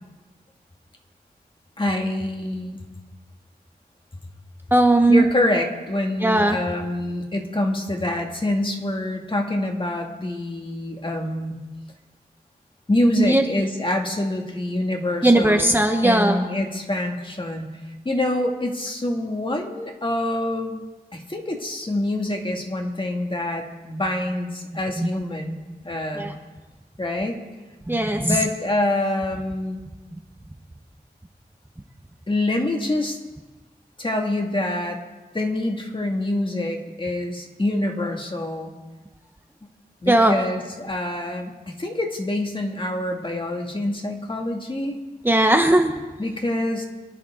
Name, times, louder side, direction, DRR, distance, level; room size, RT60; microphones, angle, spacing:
voice 1, 1.8-2.8 5.1-11.6 12.9-15.7 16.0-17.8 18.0-20.8 21.1-26.3 27.0-27.4 28.2-29.8 32.3-33.2 34.0-35.0 35.3-38.7 40.0-45.0 46.2-46.8, left 1 dB, 30° left, 2 dB, 2.2 m, -26 dB
voice 2, 4.7-5.3 6.2-6.6 13.2-13.4 15.2-16.4 25.0-25.1 26.1-26.3 27.9-28.3 40.1-40.3 45.2-46.0, right 1 dB, 10° right, 4 dB, 1.0 m, -17 dB
25.0 x 10.5 x 3.8 m, 1.2 s
wide cardioid pair, 80°, 17 cm